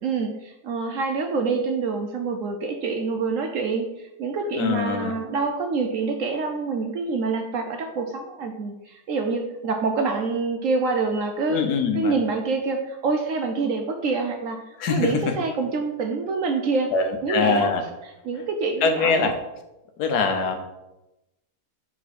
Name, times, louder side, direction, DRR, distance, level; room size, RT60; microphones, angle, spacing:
voice 1, 0.0-11.6 11.9-16.9 17.2-17.7 18.2-19.3, right 4 dB, 65° right, 4 dB, 0.8 m, -26 dB
voice 2, 4.6-5.1 11.5-12.2 14.8-15.3 16.9-17.8 18.8-19.3 20.0-20.6, left 5 dB, 75° left, 6 dB, 1.3 m, -23 dB
5.4 x 4.9 x 4.1 m, 0.95 s
omnidirectional pair, 1.8 m